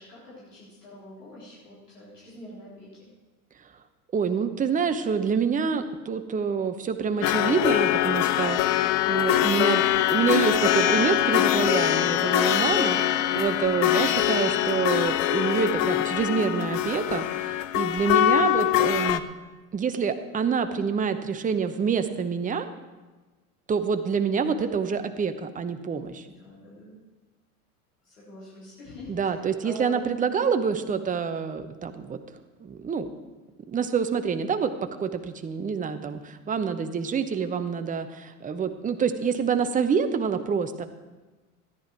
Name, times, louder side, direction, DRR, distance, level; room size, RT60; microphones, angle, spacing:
voice 1, 0.0-3.1 12.6-13.0 26.2-27.0 28.0-30.2, equal, 85° left, -8 dB, 4.1 m, -44 dB
voice 2, 4.1-13.0 13.3-19.2 19.7-22.7 23.7-26.3 29.1-32.2 32.6-33.1 33.7-40.9, right 6 dB, 15° right, 9 dB, 0.8 m, -27 dB
sound 1, 7.2-19.2, left 13 dB, 55° left, 0.7 m, -23 dB
14.0 x 10.0 x 4.6 m, 1.2 s
figure-of-eight pair, 80°, 45 cm